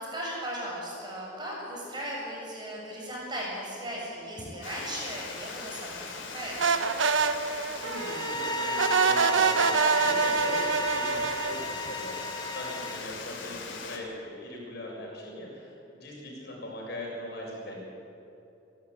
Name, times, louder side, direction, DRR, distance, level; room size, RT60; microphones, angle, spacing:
voice 1, 0.1-6.8 13.3-13.7, equal, 25° right, -3 dB, 6.9 m, -37 dB
Water, 4.6-14.0, left 4 dB, 85° left, 3.3 m, -40 dB
sound 1, 6.6-11.6, right 5 dB, 80° right, 1.0 m, -26 dB
voice 2, 7.8-12.3 12.5-17.8, left 1 dB, 55° left, -2 dB, 7.2 m, -40 dB
sound 2, 7.9-13.1, left 1 dB, 20° left, 0.9 m, -34 dB
29.0 x 12.0 x 9.7 m, 2.9 s
head